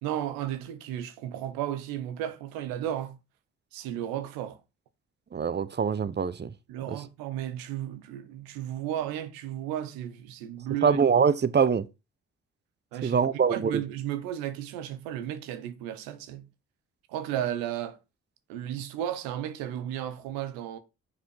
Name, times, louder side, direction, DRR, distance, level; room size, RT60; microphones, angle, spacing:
voice 1, 0.0-3.2 3.7-4.6 6.7-11.0 12.9-13.2 13.5-16.5 17.1-18.0 18.5-20.8, right 11 dB, 90° right, 0.8 m, -34 dB
voice 2, 5.3-6.5 6.9-7.0 10.8-11.9 13.0-13.8, right 6 dB, 30° right, 0.8 m, -24 dB
7.3 x 4.5 x 4.6 m
hypercardioid pair, 45°, 34 cm